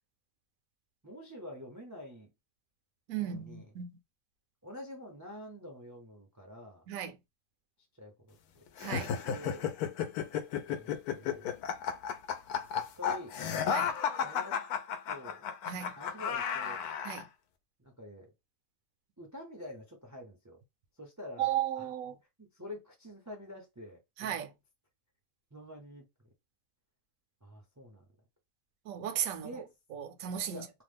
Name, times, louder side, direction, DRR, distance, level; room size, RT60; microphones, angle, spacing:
voice 1, 1.0-2.3 3.2-3.7 4.6-6.9 8.0-8.6 8.9-9.6 10.7-11.5 12.7-13.4 14.1-14.6 15.1-15.5 15.9-16.8 17.8-18.3 19.2-20.6 21.0-21.9 22.4-24.5 25.5-26.1 27.4-28.1 29.4-29.7 30.5-30.8, left 1 dB, 30° right, 0.3 m, -47 dB
voice 2, 3.1-4.0 6.9-7.2 8.8-9.1 13.7-13.9 15.7-15.9 17.0-17.2 21.4-22.1 24.2-24.5 28.9-29.6 29.9-30.7, right 10 dB, 75° right, 1.0 m, -35 dB
sound 1, 8.8-17.2, left 7 dB, 85° left, 1.1 m, -33 dB
2.8 x 2.0 x 3.3 m
omnidirectional pair, 1.6 m